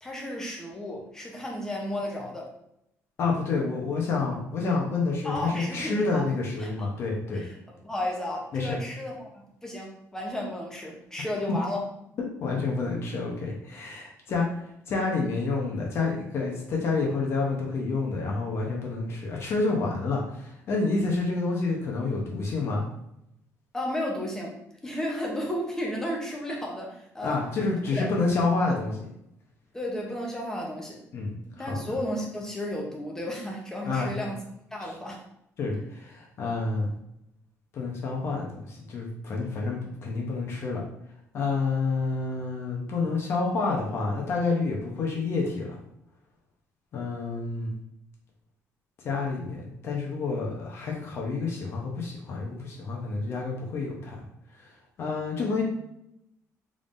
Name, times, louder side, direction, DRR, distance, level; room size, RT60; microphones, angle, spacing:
voice 1, 0.0-2.5 5.2-6.3 6.6-6.7 7.3-7.5 7.8-9.3 9.6-11.8 23.7-24.5 24.8-27.4 27.9-28.1 29.7-31.0 31.4-34.4 34.7-35.2, left 1 dB, 10° left, -1 dB, 0.8 m, -33 dB
voice 2, 3.2-7.4 8.5-8.8 12.4-14.5 14.9-22.8 27.2-29.0 31.1-31.8 33.8-34.1 35.6-36.9 37.7-40.8 41.3-45.8 46.9-47.7 49.0-54.2 55.0-55.6, left 3 dB, 45° left, -1 dB, 0.8 m, -28 dB
3.6 x 3.5 x 2.5 m, 0.78 s
cardioid pair, 165°, 6 cm